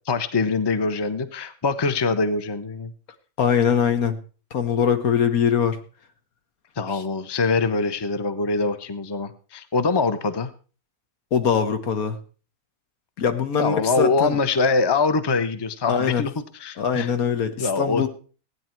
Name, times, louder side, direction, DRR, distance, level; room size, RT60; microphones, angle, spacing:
voice 1, 0.1-2.9 6.8-10.5 13.6-17.1 17.6-18.1, left 4 dB, 25° left, 12 dB, 0.7 m, -23 dB
voice 2, 3.4-4.2 4.5-5.8 6.9-7.0 11.3-12.2 13.2-14.4 15.9-16.2 16.8-18.1, left 7 dB, 80° left, 8 dB, 1.7 m, -22 dB
16.0 x 9.5 x 4.5 m, 0.37 s
omnidirectional pair, 1.5 m